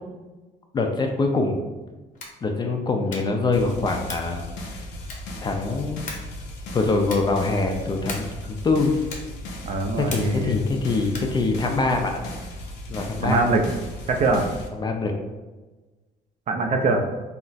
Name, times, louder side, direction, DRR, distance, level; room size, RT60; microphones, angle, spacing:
voice 1, 0.7-1.6 2.4-4.5 4.7-4.8 5.4-6.0 6.7-8.9 10.0-12.2 12.9-13.4 14.8-15.1, left 3 dB, 25° left, 3 dB, 0.3 m, -24 dB
sound 1, 2.1-2.5 3.0-3.4 4.0-4.4 5.0-5.4 6.1-6.4 7.0-7.4 8.0-8.4 9.1-9.4 10.1-10.5 11.1-11.4, left 3 dB, 50° left, 0.7 m, -38 dB
sound 2, 3.5-14.7, left 1 dB, 85° left, 0.5 m, -37 dB
voice 2, 9.6-10.6 13.2-13.6 14.1-14.5 16.5-17.0, right 3 dB, 45° right, 3 dB, 0.4 m, -22 dB
2.4 x 2.0 x 3.9 m, 1.2 s
cardioid pair, 110°, 17 cm